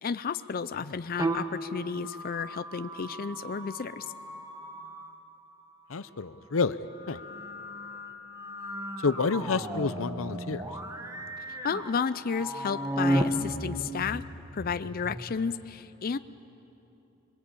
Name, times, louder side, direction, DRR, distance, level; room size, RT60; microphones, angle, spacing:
voice 1, 0.0-4.1 11.5-14.2 14.5-16.2, left 6 dB, 45° left, 12 dB, 0.5 m, -32 dB
sound 1, 1.1-5.2 6.8-15.2, right 1 dB, 15° right, 1.6 m, -35 dB
voice 2, 5.9-6.8 7.1-7.2 9.0-10.6, left 4 dB, 90° left, 14 dB, 0.7 m, -28 dB
26.0 x 22.5 x 8.6 m, 2.9 s
head